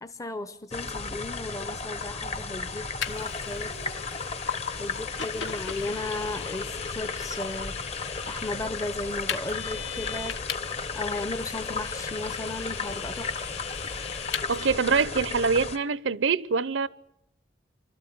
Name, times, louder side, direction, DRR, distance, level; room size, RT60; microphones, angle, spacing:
voice 1, 0.0-3.8 4.8-7.8 8.3-10.4 10.9-13.3, left 2 dB, 15° left, 0.7 m, -35 dB
sound 1, 0.7-15.8, left 4 dB, 35° left, 1.0 m, -34 dB
Vehicle, 3.0-14.7, left 8 dB, 80° left, 1.3 m, -39 dB
voice 2, 14.5-16.9, right 5 dB, 75° right, 0.7 m, -24 dB
25.0 x 13.0 x 9.2 m
head